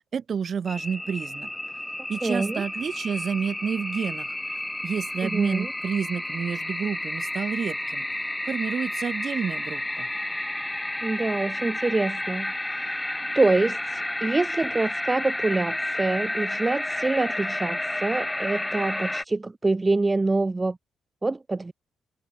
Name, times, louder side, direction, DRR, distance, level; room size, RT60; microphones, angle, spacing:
voice 1, 0.0-1.5 2.1-4.3 4.8-8.0 8.4-10.1, right 7 dB, 50° right, 1.6 m, -30 dB
sound 1, 0.7-19.2, left 1 dB, 10° left, 0.8 m, -31 dB
voice 2, 2.2-2.6 5.2-5.7 11.0-12.5 13.3-20.8 21.2-21.7, right 3 dB, 20° right, 0.4 m, -25 dB
cardioid pair, 90°, 0 cm